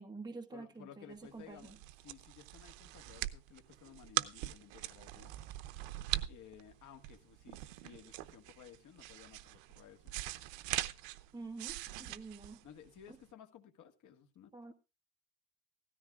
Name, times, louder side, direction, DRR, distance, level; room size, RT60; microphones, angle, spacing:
voice 1, 0.0-1.8 11.3-12.6 14.5-14.7, right 3 dB, 10° right, 1.2 m, -48 dB
voice 2, 0.5-5.3 6.3-10.1 11.7-12.2 12.6-14.7, left 9 dB, 40° left, 1.8 m, -57 dB
sound 1, 1.3-13.2, right 16 dB, 75° right, 0.9 m, -42 dB
16.5 x 14.0 x 2.4 m
cardioid pair, 155°, 45 cm